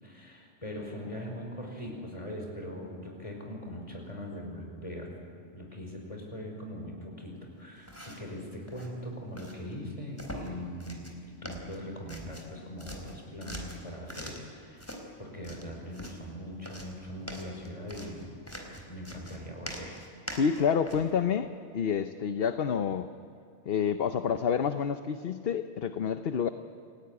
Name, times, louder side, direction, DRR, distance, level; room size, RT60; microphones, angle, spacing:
voice 1, 0.0-5.1 5.5-11.1 11.4-18.4 18.9-20.0, equal, 30° left, 1 dB, 5.5 m, -41 dB
sound 1, 7.8-8.3 8.7-8.9 9.4-9.6 10.2-10.5 10.8-11.2 11.5-12.5 12.8-14.5 14.8-15.0 15.4-16.2 16.6-21.1, equal, 10° left, 3.9 m, -43 dB
voice 2, 20.3-23.1 23.7-26.5, left 7 dB, 55° left, 9 dB, 1.0 m, -28 dB
28.5 x 18.0 x 9.7 m, 2.5 s
omnidirectional pair, 1.2 m